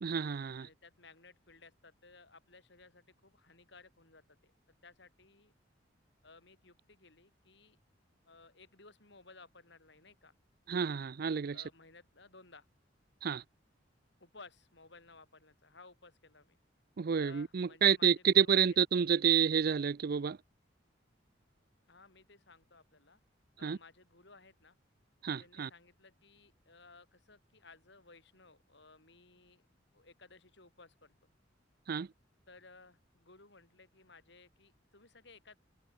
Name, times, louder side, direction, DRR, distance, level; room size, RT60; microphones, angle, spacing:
voice 1, 0.0-0.7 10.7-11.6 13.2-13.4 17.0-20.4 23.6-23.8 25.2-25.7 31.9-32.1, right 7 dB, 55° right, 0.4 m, -29 dB
voice 2, 0.6-5.5 6.2-7.8 8.3-10.3 11.5-12.7 14.2-16.6 17.1-18.8 21.9-23.2 23.6-24.8 25.4-29.6 29.9-31.3 32.5-35.6, left 3 dB, 65° left, 6.9 m, -58 dB
head